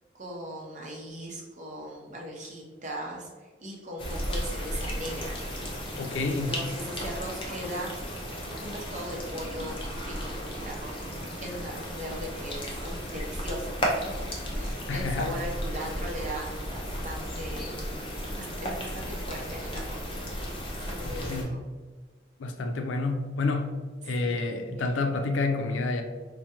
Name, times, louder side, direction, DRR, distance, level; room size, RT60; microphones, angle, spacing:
voice 1, 0.1-5.4 6.3-7.9 8.3-14.1 14.5-17.9 18.3-20.3 20.8-21.6 24.2-24.3 24.8-24.9, right 1 dB, 40° right, -2 dB, 0.7 m, -39 dB
sound 1, 4.0-21.4, equal, 25° left, 0.5 m, -34 dB
voice 2, 6.0-6.6 14.9-15.3 21.0-21.6 22.4-26.0, left 3 dB, 90° left, 5 dB, 0.4 m, -29 dB
4.6 x 2.1 x 2.8 m, 1.3 s
head